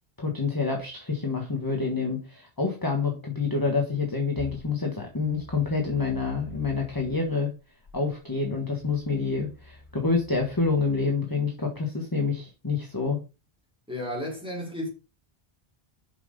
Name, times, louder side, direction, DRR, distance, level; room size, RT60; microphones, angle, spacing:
voice 1, 0.2-7.5 7.9-13.2, left 4 dB, 20° left, 1.5 m, -27 dB
sound 1, 4.3-7.3 7.9-11.1, left 1 dB, 75° left, 3.6 m, -47 dB
voice 2, 13.9-14.9, left 1 dB, 5° right, 3.7 m, -33 dB
7.1 x 6.1 x 5.2 m
omnidirectional pair, 1.1 m